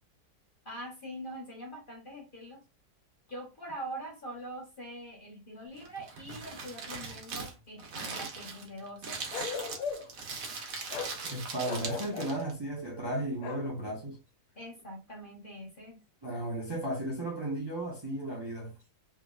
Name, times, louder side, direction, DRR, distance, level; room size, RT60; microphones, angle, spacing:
voice 1, 0.6-2.6 3.3-9.2 14.6-16.0, right 1 dB, 35° left, 1.1 m, -43 dB
Crumpling crinkling, 5.7-12.5, right 4 dB, 65° right, 1.3 m, -40 dB
Bark, 9.3-10.2 10.9-11.2 11.6-12.4 13.4-13.7, left 6 dB, 75° left, 1.1 m, -37 dB
voice 2, 11.3-14.2 16.2-18.7, right 1 dB, 20° right, 0.9 m, -34 dB
3.6 x 3.3 x 2.5 m
omnidirectional pair, 1.7 m